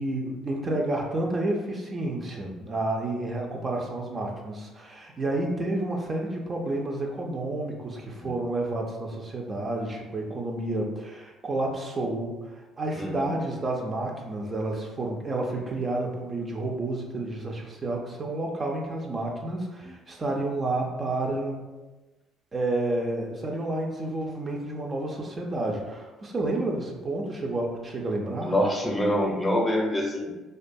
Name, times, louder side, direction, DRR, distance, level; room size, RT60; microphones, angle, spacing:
voice 1, 0.0-21.6 22.5-28.6, right 2 dB, 35° right, 0 dB, 0.4 m, -30 dB
voice 2, 13.0-13.3 19.8-19.9 28.4-30.3, left 1 dB, 15° left, -1 dB, 0.6 m, -26 dB
2.4 x 2.2 x 2.6 m, 1.1 s
supercardioid pair, 70°, 0 cm